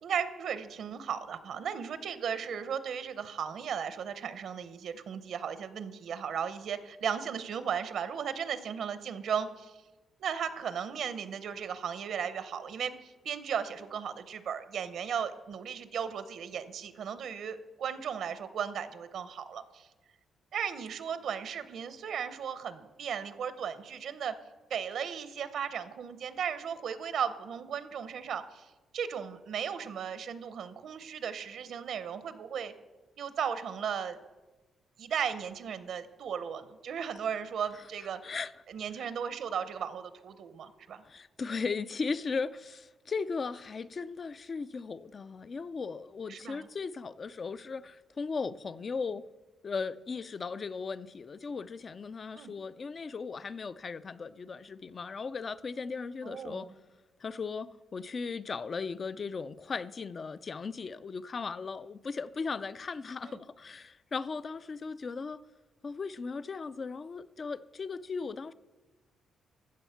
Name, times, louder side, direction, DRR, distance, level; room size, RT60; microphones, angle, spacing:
voice 1, 0.0-9.8 10.2-19.9 20.5-24.3 24.7-28.6 28.9-32.7 33.2-34.2 35.0-38.2 38.7-41.0 46.3-46.7 52.3-52.5 56.2-56.7 63.2-63.4, right 7 dB, 60° right, 0.8 m, -36 dB
voice 2, 41.0-49.2 49.6-56.7 57.2-65.4 65.8-68.5, left 4 dB, 30° left, 0.4 m, -37 dB
15.0 x 7.0 x 5.7 m
cardioid pair, 155°, 0 cm